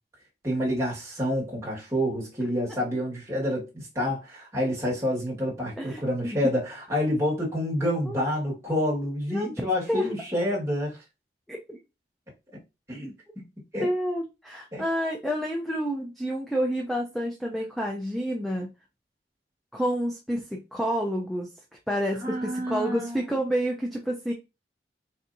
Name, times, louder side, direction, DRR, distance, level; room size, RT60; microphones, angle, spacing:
voice 1, 0.4-11.0 12.9-13.5 13.7-13.9 14.7-14.8 22.2-23.2, equal, 15° right, 1.6 m, -28 dB
voice 2, 5.8-6.5 8.1-8.3 9.3-10.1 11.5-11.8 13.8-18.7 19.7-21.5 21.9-24.3, equal, ahead, 0.5 m, -29 dB
4.2 x 3.6 x 2.6 m
head